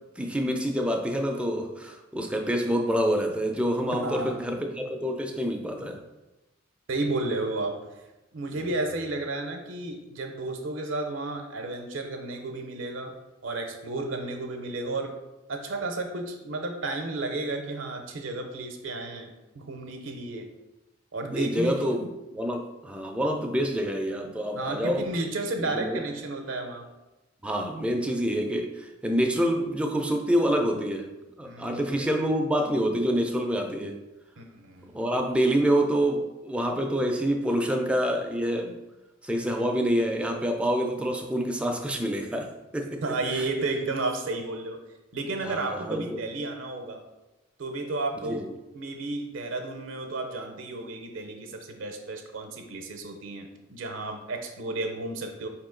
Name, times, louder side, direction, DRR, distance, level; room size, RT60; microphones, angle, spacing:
voice 1, 0.2-6.0 8.5-8.7 21.3-25.0 25.6-26.0 27.4-31.1 31.4-33.9 34.9-38.8 39.2-43.0 43.3-43.4 45.4-46.2 48.2-48.5, equal, 5° right, 3 dB, 0.4 m, -27 dB
voice 2, 4.0-4.4 6.9-7.9 8.3-13.2 13.4-15.2 15.5-20.5 21.1-21.9 24.6-26.9 31.4-32.1 34.4-34.9 43.0-44.8 45.1-47.0 47.6-48.5 48.7-55.5, right 2 dB, 75° right, 4 dB, 0.5 m, -32 dB
4.8 x 2.8 x 3.7 m, 1.0 s
head